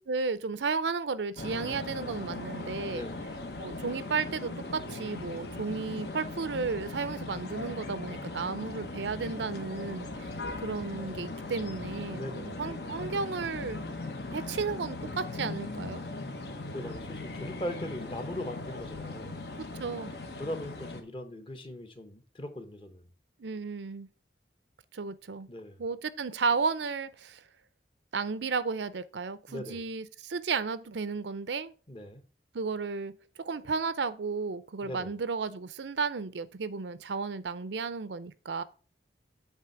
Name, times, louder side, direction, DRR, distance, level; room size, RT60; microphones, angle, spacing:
voice 1, 0.1-3.1 3.6-10.3 10.6-13.8 14.3-16.0 19.6-20.1 23.4-24.1 24.9-25.5 25.8-27.4 28.1-31.7 32.5-33.1 33.4-38.6, right 4 dB, 85° right, 0.6 m, -33 dB
sound 1, 1.4-21.0, left 2 dB, 65° left, 1.1 m, -39 dB
voice 2, 2.9-3.2 12.1-12.5 16.7-19.4 20.4-23.0 25.5-25.8 29.5-29.8 31.9-32.2 34.8-35.1, left 1 dB, 30° left, 0.9 m, -39 dB
8.2 x 3.3 x 5.8 m
head